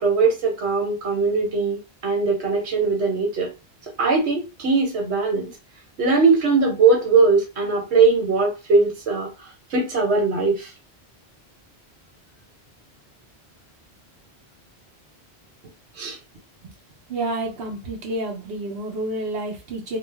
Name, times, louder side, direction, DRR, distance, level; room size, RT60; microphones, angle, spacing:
voice 1, 0.0-3.5 4.0-5.5 6.0-9.3 9.7-10.7 16.0-16.2, right 4 dB, 90° right, 1.2 m, -20 dB
voice 2, 17.1-20.0, right 1 dB, 65° right, 1.0 m, -29 dB
2.9 x 2.0 x 3.3 m
omnidirectional pair, 1.1 m